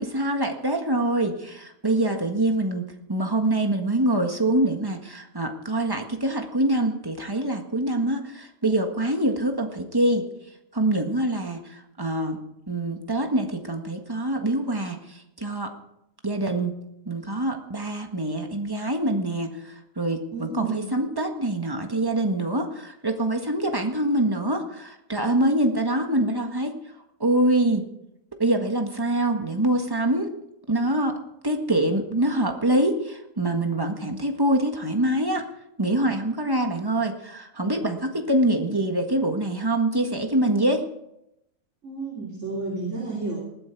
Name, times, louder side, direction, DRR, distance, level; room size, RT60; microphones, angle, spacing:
voice 1, 0.0-10.3 10.7-12.4 12.7-15.7 16.2-16.7 17.0-26.8 27.2-27.9 28.4-30.3 30.7-31.2 31.4-35.5 35.8-40.8, right 1 dB, 15° right, 4 dB, 1.5 m, -25 dB
voice 2, 20.3-20.8 41.8-43.4, right 3 dB, 50° right, -3 dB, 3.4 m, -31 dB
20.0 x 12.0 x 4.6 m, 0.82 s
omnidirectional pair, 1.6 m